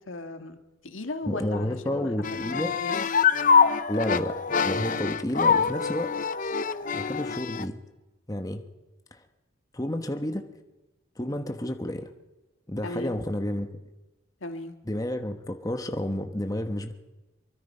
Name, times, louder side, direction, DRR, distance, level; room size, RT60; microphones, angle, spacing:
voice 1, 0.1-0.6 0.8-3.0 12.8-13.2 14.4-14.8, left 2 dB, 80° left, 7 dB, 1.8 m, -37 dB
voice 2, 1.2-2.7 3.9-4.4 4.6-6.1 6.9-7.8 8.3-8.6 9.1-9.2 9.7-10.4 11.2-12.1 12.7-13.7 14.9-16.9, left 1 dB, 20° left, 6 dB, 1.2 m, -30 dB
sound 1, 2.2-7.6, left 6 dB, 40° left, 0.7 m, -24 dB
24.0 x 23.5 x 5.6 m, 1.1 s
head